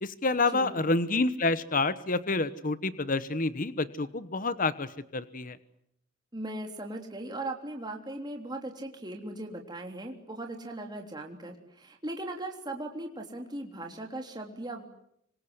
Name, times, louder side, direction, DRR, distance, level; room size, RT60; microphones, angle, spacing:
voice 1, 0.0-5.6, left 3 dB, 40° left, 14 dB, 1.1 m, -28 dB
voice 2, 0.5-1.0 6.3-14.8, right 1 dB, 20° right, 2 dB, 3.5 m, -38 dB
26.5 x 25.5 x 8.1 m, 0.73 s
head